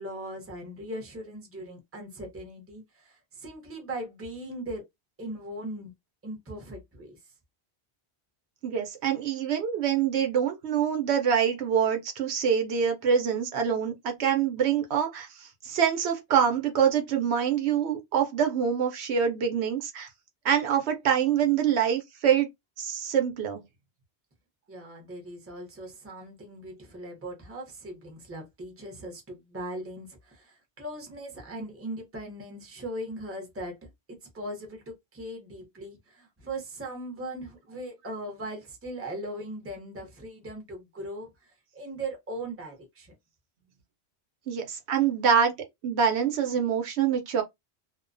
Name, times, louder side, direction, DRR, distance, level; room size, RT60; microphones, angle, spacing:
voice 1, 0.0-4.9 5.2-5.9 6.2-7.3 24.7-43.2, right 1 dB, 15° right, 0.6 m, -39 dB
voice 2, 8.6-20.1 20.4-22.5 22.8-23.6 44.5-45.5 45.8-47.4, right 8 dB, 75° right, 0.9 m, -25 dB
2.3 x 2.1 x 2.5 m
omnidirectional pair, 1.1 m